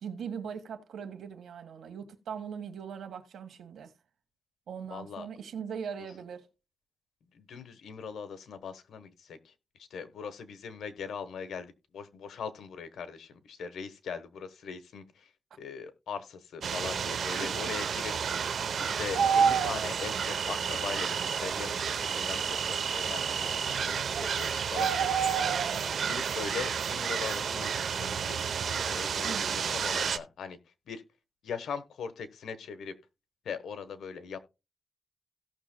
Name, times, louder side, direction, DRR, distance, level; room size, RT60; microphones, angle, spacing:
voice 1, 0.0-3.9 4.7-6.5 17.4-17.5 29.2-29.8, right 7 dB, 90° right, 1.5 m, -40 dB
voice 2, 4.9-5.3 7.3-15.3 15.6-18.1 18.8-25.1 26.0-30.6 30.9-31.0 31.4-33.0 33.4-34.4, left 6 dB, 85° left, 1.1 m, -40 dB
sound 1, 16.6-30.2, right 7 dB, 70° right, 0.7 m, -30 dB
17.0 x 6.2 x 2.2 m
cardioid pair, 90°, 0 cm